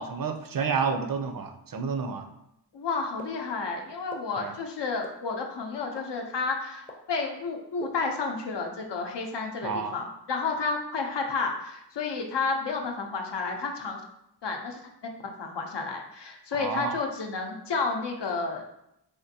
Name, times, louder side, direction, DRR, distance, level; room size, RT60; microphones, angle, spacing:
voice 1, 0.0-2.3 4.4-4.5 9.6-10.0 16.5-16.9, right 5 dB, 55° right, 6 dB, 0.4 m, -30 dB
voice 2, 2.7-14.0 14.4-14.8 15.2-18.8, left 4 dB, 80° left, 2 dB, 0.6 m, -31 dB
sound 1, 3.2-3.3 4.1-4.2 5.0-5.1 6.0-6.1 6.9-7.0 7.8-7.9, left 3 dB, 20° left, 0.5 m, -40 dB
3.5 x 2.5 x 2.7 m, 0.79 s
wide cardioid pair, 75°, 41 cm